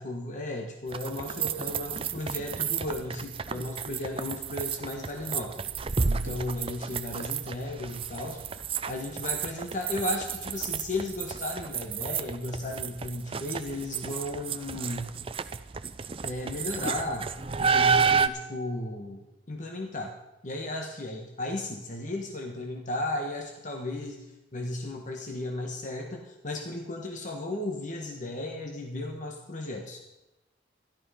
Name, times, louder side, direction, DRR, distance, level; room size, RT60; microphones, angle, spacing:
voice 1, 0.0-5.6 6.1-15.1 16.2-17.3 17.6-20.1 20.4-24.2 24.5-30.0, left 1 dB, 40° left, 2 dB, 1.4 m, -35 dB
sound 1, 0.9-18.3, right 6 dB, 30° right, 0.5 m, -31 dB
13.5 x 12.0 x 5.7 m, 0.97 s
head